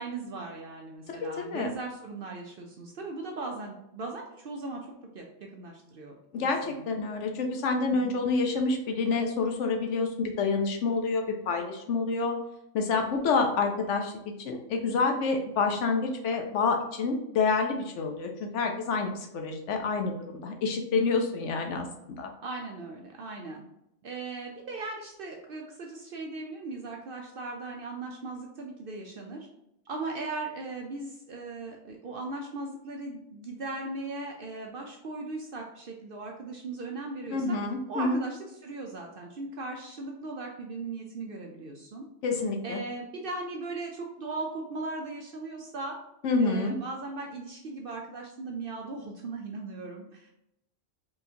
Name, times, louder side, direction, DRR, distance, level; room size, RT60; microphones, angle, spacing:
voice 1, 0.0-4.8 5.1-6.8 7.9-8.1 22.4-23.6 24.0-29.5 29.9-37.6 37.9-42.0 42.6-46.0 46.4-50.3, right 3 dB, 60° right, 1 dB, 0.6 m, -38 dB
voice 2, 1.1-1.7 6.3-12.4 12.7-21.9 22.2-22.3 37.3-38.2 42.2-42.8 46.2-46.8, left 4 dB, 70° left, 4 dB, 0.9 m, -28 dB
4.4 x 3.2 x 2.7 m, 0.82 s
omnidirectional pair, 1.3 m